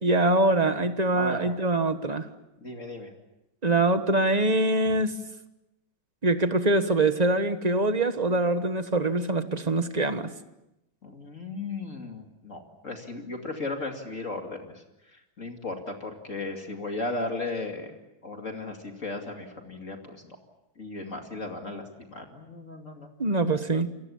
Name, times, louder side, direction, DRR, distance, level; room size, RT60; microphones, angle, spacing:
voice 1, 0.0-2.3 3.6-5.2 6.2-10.3 23.2-23.9, right 2 dB, 25° right, 10 dB, 1.2 m, -24 dB
voice 2, 1.1-1.5 2.6-3.1 11.0-14.8 15.1-17.9 18.2-20.4 20.8-23.1, left 2 dB, 40° left, 3 dB, 2.8 m, -36 dB
29.0 x 23.5 x 7.2 m, 0.89 s
omnidirectional pair, 2.2 m